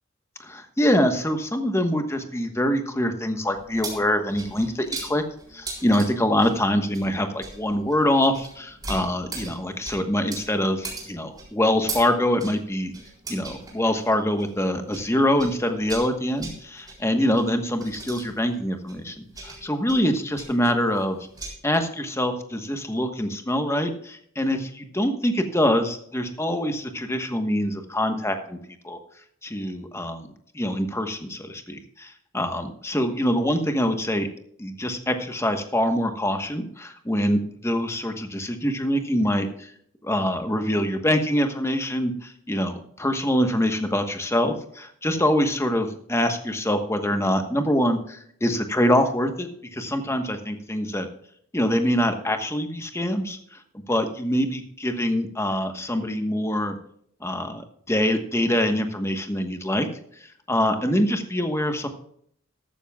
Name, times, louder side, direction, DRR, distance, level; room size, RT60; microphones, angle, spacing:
voice 1, 0.4-5.2 5.5-12.9 13.3-21.2 21.6-28.6 28.8-29.0 29.4-30.3 30.5-34.3 34.6-39.7 40.0-51.1 51.5-53.4 53.9-56.8 57.2-57.6 57.9-59.9 60.5-61.9, left 1 dB, 15° left, 6 dB, 1.2 m, -24 dB
sound 1, 3.5-15.1 15.4-21.5, right 3 dB, 20° right, 4.0 m, -39 dB
14.5 x 12.5 x 2.3 m, 0.65 s
head